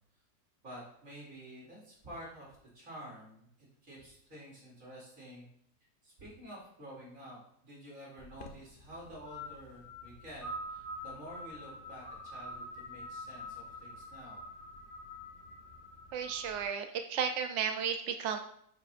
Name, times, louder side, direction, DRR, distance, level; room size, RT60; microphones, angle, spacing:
voice 1, 0.6-5.4 6.0-14.4, equal, 45° right, -5 dB, 3.2 m, -50 dB
sound 1, 8.2-16.6, left 1 dB, 50° left, 0.6 m, -46 dB
voice 2, 16.1-18.4, right 7 dB, 75° right, 6 dB, 0.6 m, -33 dB
9.7 x 5.8 x 2.6 m, 0.69 s
omnidirectional pair, 1.9 m